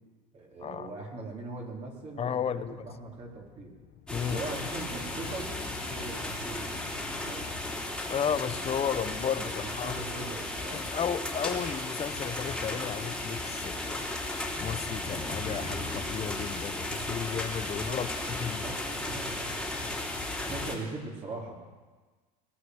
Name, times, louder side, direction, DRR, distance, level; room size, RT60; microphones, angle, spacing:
voice 1, 0.3-3.7 4.3-5.5 5.8-7.4 9.4-10.9 17.8-19.6 20.4-21.5, right 2 dB, 35° right, -1 dB, 3.8 m, -41 dB
voice 2, 2.2-2.9 4.1-4.4 8.1-10.0 10.7-14.1 14.6-18.7, left 8 dB, 30° left, 12 dB, 0.9 m, -33 dB
sound 1, 2.7-8.9, left 10 dB, 45° left, 1.3 m, -53 dB
sound 2, 4.1-20.7, left 2 dB, 5° left, 3.2 m, -35 dB
20.0 x 8.9 x 8.0 m, 1.3 s
supercardioid pair, 105°, 20 cm